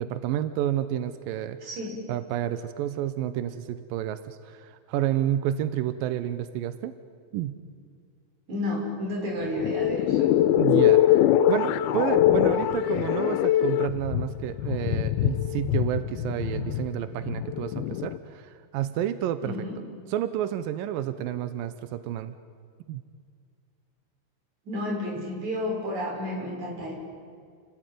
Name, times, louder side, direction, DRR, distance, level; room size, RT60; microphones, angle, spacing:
voice 1, 0.0-1.6 2.1-6.9 7.3-7.6 10.6-19.5 20.1-22.3 22.9-23.0, right 11 dB, 80° right, 11 dB, 2.1 m, -30 dB
voice 2, 1.6-2.0 8.5-10.3 19.4-19.8 24.7-26.9, left 1 dB, 40° right, -1 dB, 7.4 m, -31 dB
sound 1, 9.4-18.2, left 12 dB, 75° left, 2.3 m, -23 dB
30.0 x 19.5 x 9.3 m, 2.2 s
omnidirectional pair, 5.2 m